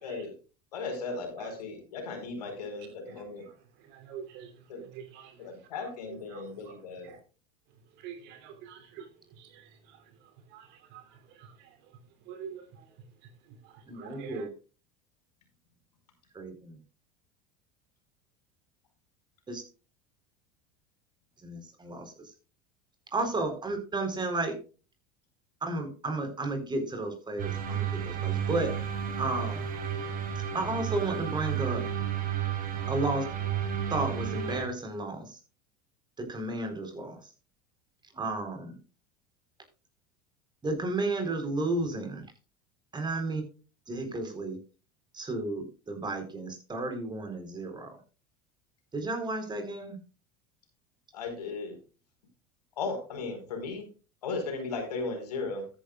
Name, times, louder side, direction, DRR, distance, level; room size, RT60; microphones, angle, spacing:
voice 1, 0.0-0.3 0.7-3.5 4.7-4.8 5.4-7.2 51.1-51.8 52.8-53.8 54.2-55.6, left 4 dB, 90° left, 4.6 m, -36 dB
voice 2, 3.9-4.5 4.8-5.3 6.3-6.8 7.0-7.2 8.0-9.1 9.4-9.6 10.5-10.7 10.9-11.0 12.3-12.6 14.0-14.5, right 8 dB, 65° right, 3.1 m, -45 dB
voice 3, 13.9-14.5 16.3-16.8 21.4-22.1 23.1-24.6 25.6-28.7 29.2-29.6 30.5-31.8 32.9-33.2 33.9-35.3 36.2-37.2 38.1-38.7 40.6-42.2 42.9-43.4 43.9-44.6 45.2-48.0 48.9-50.0, right 2 dB, 20° right, 4.3 m, -32 dB
sound 1, 27.4-34.6, right 8 dB, 45° right, 3.9 m, -32 dB
13.5 x 10.0 x 2.4 m
hypercardioid pair, 90°, 20 cm